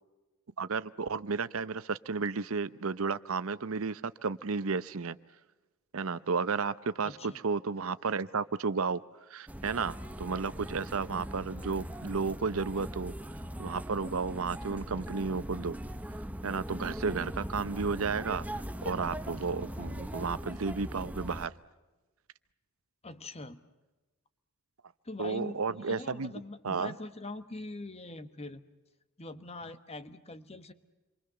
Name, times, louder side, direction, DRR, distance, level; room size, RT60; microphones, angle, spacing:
voice 1, 0.6-5.2 5.9-9.0 9.3-13.1 13.6-15.8 16.4-18.4 18.8-21.5 25.2-26.3 26.6-26.9, right 4 dB, 70° right, 15 dB, 0.8 m, -33 dB
voice 2, 7.0-7.4 23.0-23.6 25.0-28.6 29.2-30.7, left 2 dB, 30° left, 11 dB, 1.2 m, -43 dB
sound 1, 9.5-21.5, equal, 5° right, 0.9 m, -40 dB
28.5 x 23.5 x 6.9 m, 1.1 s
head